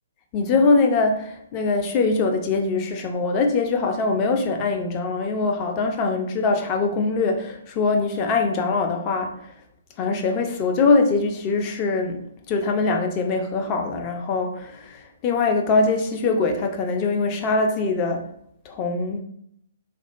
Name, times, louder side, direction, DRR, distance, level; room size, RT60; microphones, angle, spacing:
voice 1, 0.3-9.5 10.0-12.2 12.5-18.3 18.7-19.2, left 3 dB, 30° left, 4 dB, 0.5 m, -22 dB
3.6 x 2.0 x 2.2 m, 0.72 s
figure-of-eight pair, 130°, 0 cm